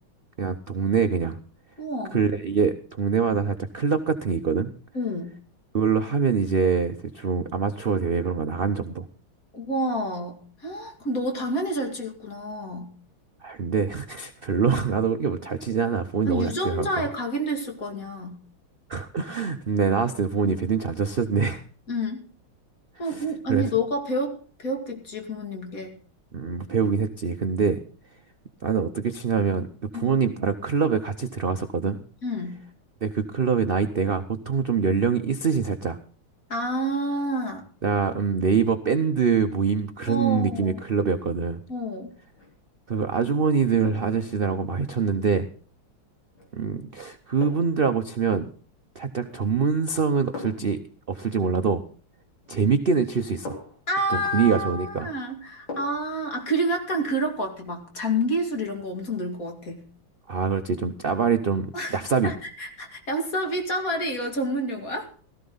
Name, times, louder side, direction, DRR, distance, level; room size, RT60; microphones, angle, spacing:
voice 1, 0.4-1.4 2.1-4.7 5.7-9.0 13.4-16.9 18.9-21.6 23.1-23.2 23.5-23.7 26.3-27.8 28.6-29.7 29.9-32.0 33.0-36.0 37.8-41.6 42.9-45.5 46.5-48.5 48.9-50.8 51.1-51.8 52.5-53.6 54.1-55.1 60.3-62.3, right 6 dB, 65° right, 8 dB, 0.5 m, -24 dB
voice 2, 1.8-2.2 4.9-5.3 9.5-12.9 16.3-18.3 20.4-20.5 21.9-22.2 23.0-26.0 29.9-30.1 32.2-32.5 36.5-37.7 40.1-40.8 41.7-42.1 53.9-59.8 61.7-62.0 62.2-65.1, equal, 45° left, 3 dB, 2.9 m, -28 dB
sound 1, 42.3-42.6 43.8-44.3 46.3-46.5 47.4-47.9 49.2-49.6 50.3-50.8 52.5-52.6 53.5-53.9 55.7-56.1 56.5-56.6, left 3 dB, 75° left, 4.6 m, -40 dB
17.0 x 14.0 x 3.9 m, 0.41 s
omnidirectional pair, 2.1 m